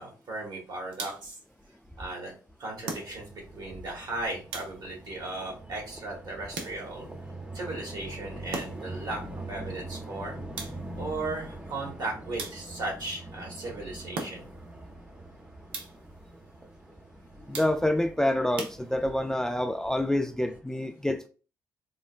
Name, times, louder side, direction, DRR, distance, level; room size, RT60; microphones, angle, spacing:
voice 1, 0.0-1.4 2.0-2.3 2.6-7.1 7.5-10.4 10.9-14.5, right 2 dB, 60° right, 1.5 m, -36 dB
sound 1, 0.9-1.4 2.8-3.5 4.5-5.1 6.5-7.1 8.5-9.0 10.6-11.1 12.4-12.9 14.1-14.7 15.7-16.2 17.5-18.0 18.6-19.3, right 4 dB, 75° right, 0.6 m, -40 dB
sound 2, 2.9-20.6, right 1 dB, 15° right, 0.8 m, -44 dB
voice 2, 17.5-21.3, left 1 dB, 5° left, 0.4 m, -27 dB
3.8 x 2.1 x 2.4 m
hypercardioid pair, 45°, 8 cm